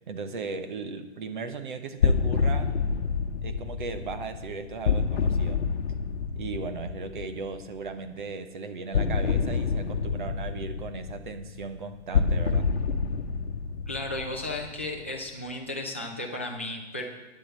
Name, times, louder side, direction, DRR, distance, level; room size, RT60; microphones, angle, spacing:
voice 1, 0.1-2.8 3.4-5.6 6.3-12.7, right 4 dB, 45° right, 9 dB, 1.1 m, -37 dB
sound 1, 2.0-7.8 8.9-15.2, left 5 dB, 60° left, 1.0 m, -28 dB
voice 2, 13.9-17.1, left 2 dB, 10° left, -1 dB, 0.4 m, -34 dB
9.6 x 7.6 x 8.1 m, 1.1 s
hypercardioid pair, 175°, 34 cm